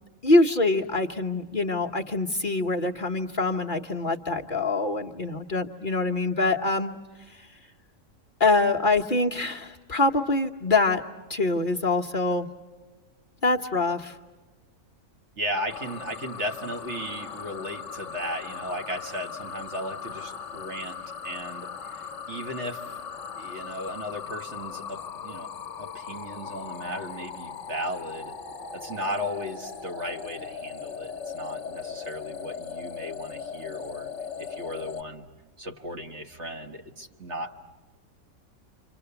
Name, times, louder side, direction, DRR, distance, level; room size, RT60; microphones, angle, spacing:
voice 1, 0.2-6.9 7.3-7.5 8.4-11.0 11.3-12.5 13.4-14.2, left 2 dB, 40° left, 0 dB, 1.1 m, -24 dB
voice 2, 15.4-23.0 23.4-25.5 25.8-28.4 28.7-34.1 34.4-35.3 35.6-37.7, equal, 55° right, 3 dB, 2.0 m, -36 dB
sound 1, 15.7-35.0, left 6 dB, 60° left, 1.4 m, -38 dB
29.5 x 26.5 x 6.9 m, 1.3 s
omnidirectional pair, 1.4 m